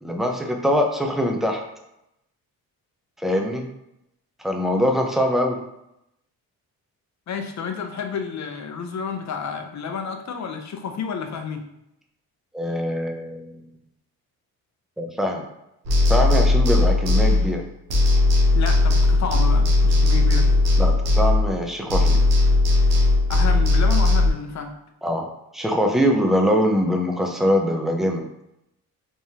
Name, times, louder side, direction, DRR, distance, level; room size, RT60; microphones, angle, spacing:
voice 1, 0.0-1.6 3.2-3.6 4.4-5.6 12.5-13.6 15.0-15.5 16.1-17.6 20.8-22.2 25.0-25.3 25.5-28.2, equal, ahead, 2 dB, 0.5 m, -23 dB
voice 2, 7.3-11.7 18.5-20.5 23.3-24.7, left 6 dB, 50° left, 5 dB, 0.6 m, -30 dB
sound 1, 15.9-17.6 17.9-21.6 21.9-24.3, left 2 dB, 85° right, 0.9 m, -18 dB
3.6 x 3.0 x 2.8 m, 0.84 s
cardioid pair, 100°, 37 cm